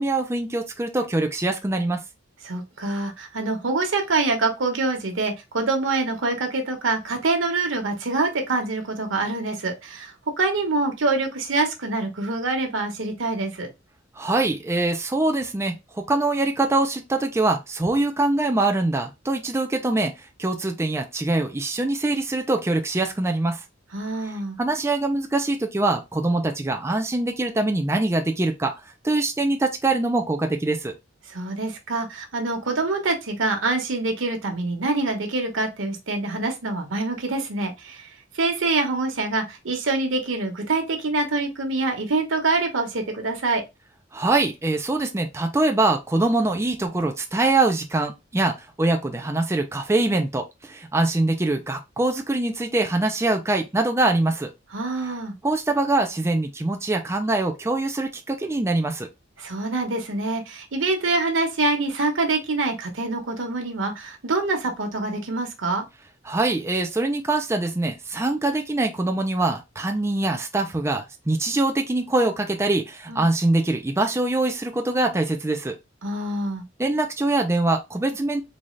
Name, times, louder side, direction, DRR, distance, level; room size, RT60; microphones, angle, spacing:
voice 1, 0.0-2.0 14.2-20.1 20.4-23.6 24.6-28.7 29.0-30.9 44.1-54.5 55.4-59.1 66.3-75.8 76.8-78.4, right 2 dB, 15° right, 0.4 m, -23 dB
voice 2, 2.4-10.1 10.4-13.7 23.9-24.6 31.3-38.1 38.3-43.6 54.7-55.3 59.4-65.8 73.1-73.2 76.0-76.6, right 3 dB, 90° right, 1.0 m, -25 dB
4.0 x 2.4 x 3.1 m
head